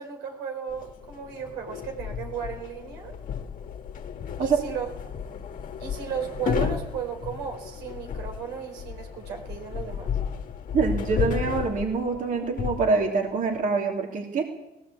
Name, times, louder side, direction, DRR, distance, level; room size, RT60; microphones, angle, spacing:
voice 1, 0.0-3.2 4.4-4.9 5.8-10.2, right 7 dB, 85° right, 3 dB, 4.3 m, -35 dB
sound 1, 0.7-13.6, left 7 dB, 50° left, 1.9 m, -33 dB
voice 2, 10.7-14.5, right 4 dB, 50° right, 1 dB, 3.0 m, -25 dB
18.5 x 17.0 x 8.4 m, 0.98 s
cardioid pair, 110°, 17 cm